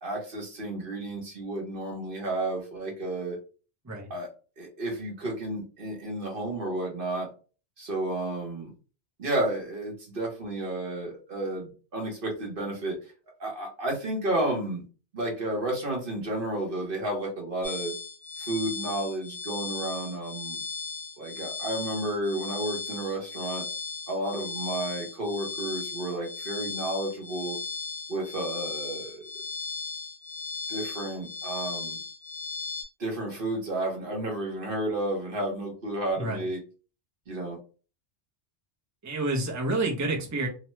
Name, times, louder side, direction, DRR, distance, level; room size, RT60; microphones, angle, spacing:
voice 1, 0.0-3.4 4.1-4.3 4.6-7.3 7.8-8.7 9.2-13.0 13.4-14.8 15.1-17.9 18.4-20.6 21.2-23.7 24.1-27.6 28.1-29.3 30.7-32.0 33.0-36.6 37.3-37.6, right 1 dB, 55° right, 0 dB, 1.1 m, -32 dB
sound 1, 17.6-32.8, left 4 dB, 50° left, 1.3 m, -37 dB
voice 2, 39.0-40.5, right 2 dB, 20° right, -1 dB, 0.6 m, -28 dB
2.9 x 2.1 x 3.0 m, 0.36 s
omnidirectional pair, 1.1 m